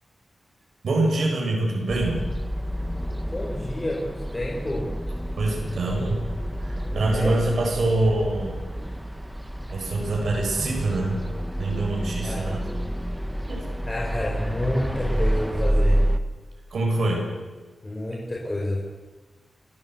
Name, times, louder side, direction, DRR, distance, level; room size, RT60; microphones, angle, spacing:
voice 1, 0.8-2.2 5.4-6.2 6.6-8.6 9.7-11.2 11.6-12.6 13.5-13.6 16.7-17.3, right 2 dB, 85° right, 0 dB, 7.4 m, -24 dB
sound 1, 1.9-16.2, equal, 5° right, 1.3 m, -29 dB
voice 2, 3.3-4.9 6.7-7.4 12.2-12.6 13.8-16.0 17.8-18.8, left 1 dB, 20° left, -3 dB, 4.8 m, -29 dB
29.5 x 14.0 x 8.2 m, 1.2 s
wide cardioid pair, 130°, 0 cm